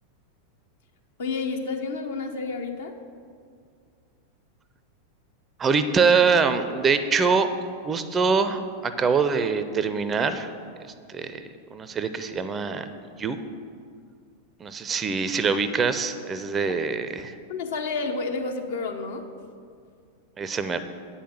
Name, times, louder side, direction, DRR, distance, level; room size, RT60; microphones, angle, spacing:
voice 1, 1.2-3.0 17.5-19.2, left 4 dB, 60° left, 4 dB, 0.9 m, -30 dB
voice 2, 5.6-7.5 7.8-10.5 11.1-11.4 11.7-12.9 13.2-13.4 14.6-17.3 20.4-20.8, right 5 dB, 20° right, 11 dB, 0.5 m, -24 dB
8.4 x 5.7 x 7.5 m, 2.2 s
figure-of-eight pair, 90°, 0 cm